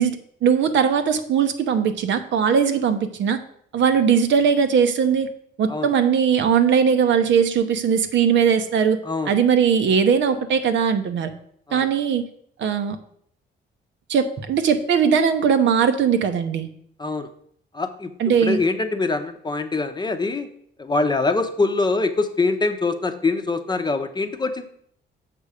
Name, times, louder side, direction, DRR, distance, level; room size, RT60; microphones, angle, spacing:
voice 1, 0.0-3.4 3.7-5.3 5.6-9.0 9.3-11.3 11.7-12.2 12.6-13.0 14.1-16.7 18.2-18.6, right 7 dB, 70° right, 7 dB, 0.9 m, -19 dB
voice 2, 9.0-9.4 11.7-11.9 17.0-17.3 17.7-18.1 18.4-20.5 20.8-24.7, left 3 dB, 20° left, 7 dB, 0.7 m, -24 dB
6.8 x 5.4 x 4.9 m, 0.65 s
cardioid pair, 90°, 20 cm